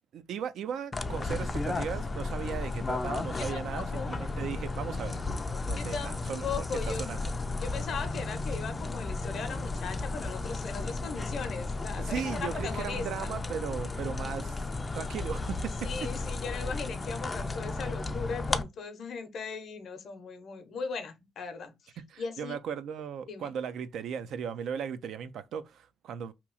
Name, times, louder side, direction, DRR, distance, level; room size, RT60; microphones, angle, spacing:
voice 1, 0.1-5.2 5.6-6.5 6.9-7.3 12.0-14.6 14.9-15.9 22.1-26.3, right 7 dB, 75° right, 0.4 m, -37 dB
sound 1, 0.9-18.6, left 3 dB, 25° left, 0.4 m, -34 dB
voice 2, 3.3-4.1 5.7-7.1 7.6-13.3 15.8-21.7 22.2-22.6 23.3-23.5, left 5 dB, 65° left, 0.7 m, -38 dB
2.9 x 2.3 x 3.8 m
cardioid pair, 90°, 0 cm